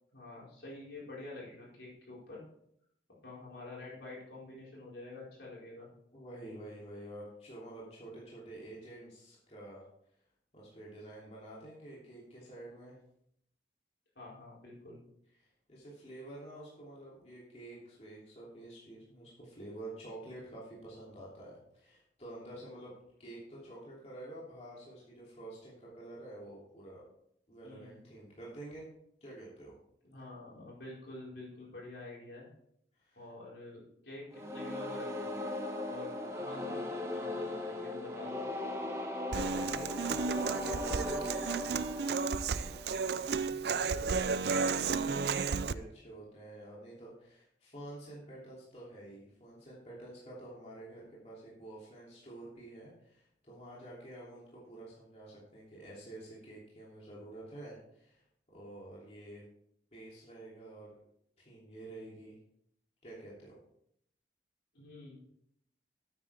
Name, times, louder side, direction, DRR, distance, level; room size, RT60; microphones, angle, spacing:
voice 1, 0.1-2.4 3.2-5.9 14.1-15.0 27.6-28.0 30.0-32.5 33.1-35.4 35.8-36.1 36.3-38.4 64.7-65.2, left 2 dB, 70° left, -5 dB, 4.7 m, -48 dB
voice 2, 6.1-9.8 10.5-13.0 15.4-22.9 23.2-27.0 27.5-28.9 29.2-29.7 33.0-33.3 39.7-41.8 42.4-58.2 58.5-59.4 59.9-61.0 61.4-62.4 63.0-63.6, right 1 dB, 35° left, -6 dB, 3.0 m, -49 dB
sound 1, 34.3-43.2, left 1 dB, 15° right, 1.3 m, -38 dB
Human voice / Acoustic guitar, 39.3-45.7, right 5 dB, 60° right, 0.4 m, -33 dB
12.5 x 9.0 x 3.5 m, 0.72 s
head